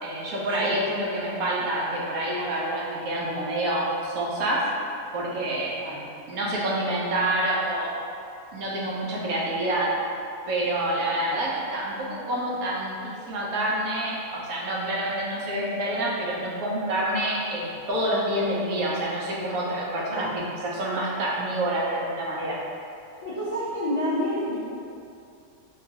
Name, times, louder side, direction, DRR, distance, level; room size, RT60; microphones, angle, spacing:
voice 1, 0.0-4.7 5.1-5.8 6.3-7.9 8.5-10.0 10.5-22.6, right 1 dB, 80° right, -4 dB, 1.1 m, -27 dB
voice 2, 23.2-24.6, equal, 55° left, -12 dB, 0.4 m, -29 dB
3.7 x 2.3 x 2.6 m, 2.5 s
omnidirectional pair, 1.5 m